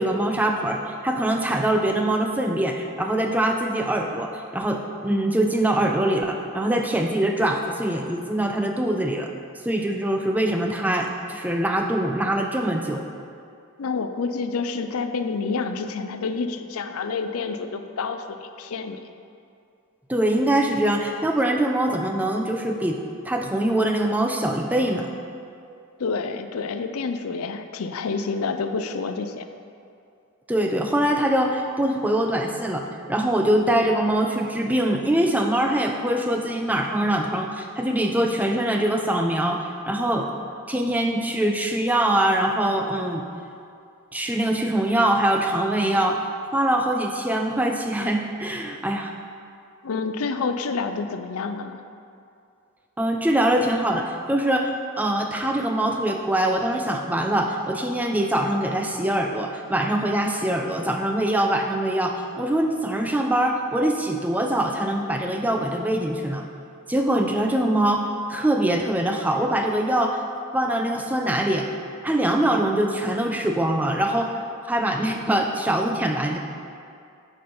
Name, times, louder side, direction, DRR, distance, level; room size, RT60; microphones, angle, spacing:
voice 1, 0.0-9.3 9.6-13.1 20.1-23.0 23.3-25.1 30.5-40.3 40.7-43.2 44.1-46.2 46.5-49.2 53.0-66.5 66.9-70.2 70.5-71.7 72.0-74.3 74.7-76.4, right 1 dB, 5° right, 3 dB, 0.4 m, -23 dB
voice 2, 13.8-19.0 26.0-29.5 49.8-51.8, left 4 dB, 85° left, 8 dB, 0.5 m, -28 dB
9.2 x 5.0 x 4.3 m, 2.5 s
head